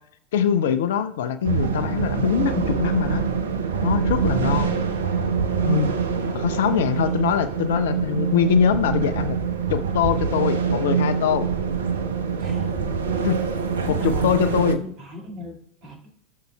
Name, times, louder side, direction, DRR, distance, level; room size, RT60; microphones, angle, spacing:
voice 1, 0.3-3.2 3.8-4.8 5.7-5.9 6.3-9.4 9.7-11.5 13.2-13.4 14.0-14.8, left 9 dB, 60° left, 10 dB, 0.5 m, -23 dB
sound 1, 1.4-14.8, right 6 dB, 65° right, 0.7 m, -24 dB
voice 2, 4.3-5.1 6.2-7.1 12.4-12.7 13.8-16.1, left 1 dB, 40° right, 1 dB, 2.0 m, -37 dB
18.5 x 6.6 x 2.3 m, 0.73 s
figure-of-eight pair, 85°, 0 cm